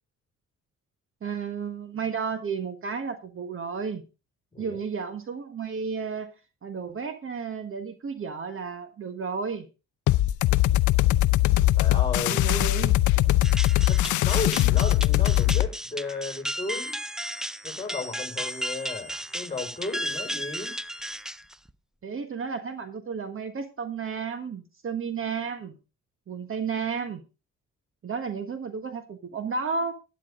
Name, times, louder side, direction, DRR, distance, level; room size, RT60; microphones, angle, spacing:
voice 1, 1.2-4.0 4.6-6.3 6.6-9.7 12.2-13.0 22.0-25.8 26.3-27.2 28.0-29.9, right 5 dB, 45° right, 9 dB, 1.5 m, -32 dB
sound 1, 10.1-15.7, left 15 dB, 75° left, 0.5 m, -21 dB
voice 2, 11.8-12.5 13.9-17.0 17.6-20.8, left 3 dB, 15° left, 5 dB, 5.2 m, -34 dB
sound 2, 13.4-21.7, equal, ahead, 0.5 m, -34 dB
12.0 x 10.0 x 3.8 m, 0.30 s
cardioid pair, 90°, 30 cm